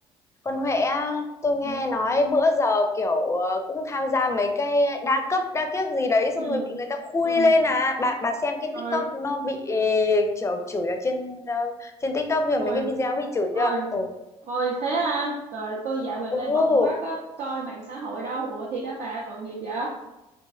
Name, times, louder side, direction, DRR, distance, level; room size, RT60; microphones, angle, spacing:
voice 1, 0.5-14.1 16.3-16.9, left 2 dB, 20° left, 5 dB, 0.5 m, -24 dB
voice 2, 13.5-13.9 14.5-19.9, right 3 dB, 60° right, -4 dB, 0.6 m, -30 dB
3.0 x 2.6 x 2.3 m, 0.99 s
hypercardioid pair, 60°, 14 cm